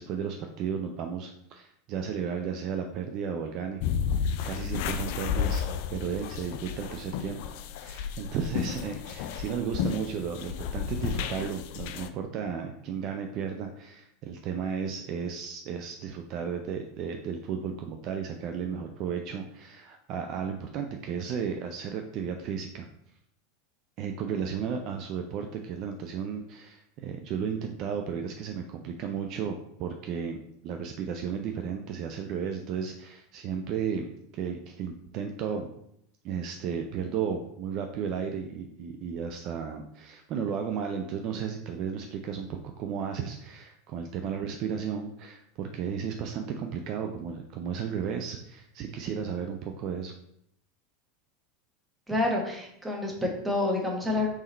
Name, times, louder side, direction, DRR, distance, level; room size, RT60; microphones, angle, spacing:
voice 1, 0.0-3.8 4.4-5.6 5.9-7.4 7.7-22.9 24.0-30.4 30.6-35.7 36.2-50.1, right 7 dB, 45° right, 4 dB, 0.4 m, -34 dB
sound 1, 3.8-12.1, left 7 dB, 55° left, 0.3 m, -32 dB
voice 2, 52.1-54.3, left 2 dB, 10° right, 0 dB, 1.1 m, -28 dB
3.6 x 3.2 x 4.1 m, 0.75 s
figure-of-eight pair, 80°, 0 cm